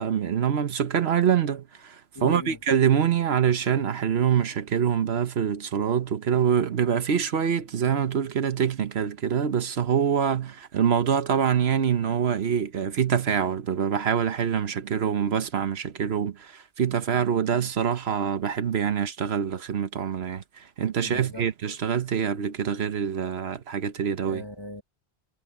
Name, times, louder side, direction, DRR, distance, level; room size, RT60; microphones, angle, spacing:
voice 1, 0.0-24.4, right 8 dB, 70° right, 1.2 m, -25 dB
voice 2, 2.1-2.6 21.0-21.5 24.2-24.8, left 2 dB, 25° left, 1.0 m, -38 dB
omnidirectional pair, 1.1 m